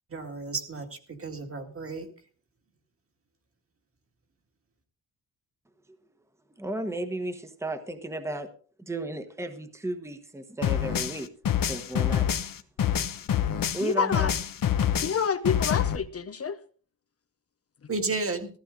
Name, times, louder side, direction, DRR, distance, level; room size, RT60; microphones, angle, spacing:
voice 1, 0.1-2.1 17.9-18.5, right 3 dB, 35° right, 2.0 m, -32 dB
voice 2, 6.6-8.5 8.9-11.3 11.7-12.3 13.7-14.3, right 1 dB, 10° right, 1.2 m, -34 dB
sound 1, 10.6-13.9 14.1-16.0, left 9 dB, 65° left, 1.1 m, -26 dB
voice 3, 13.8-14.3 15.0-16.6, left 6 dB, 40° left, 0.7 m, -28 dB
14.5 x 14.5 x 3.8 m
wide cardioid pair, 160°, 36 cm